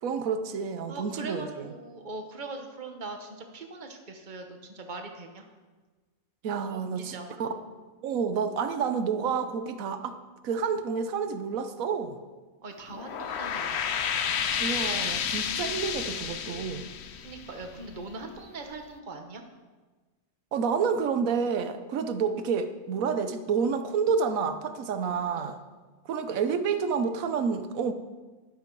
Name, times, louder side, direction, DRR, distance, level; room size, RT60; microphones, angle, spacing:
voice 1, 0.0-1.7 6.4-7.5 8.0-10.2 10.4-12.2 14.6-16.9 20.5-25.6 26.1-27.9, right 6 dB, 70° right, 9 dB, 1.3 m, -29 dB
voice 2, 0.9-5.5 6.7-7.4 12.6-13.9 14.8-15.0 17.2-19.4 25.0-25.6, right 3 dB, 35° right, 4 dB, 1.3 m, -41 dB
sound 1, 12.9-18.1, left 8 dB, 55° left, 0.8 m, -31 dB
13.0 x 11.0 x 4.7 m, 1.3 s
omnidirectional pair, 1.5 m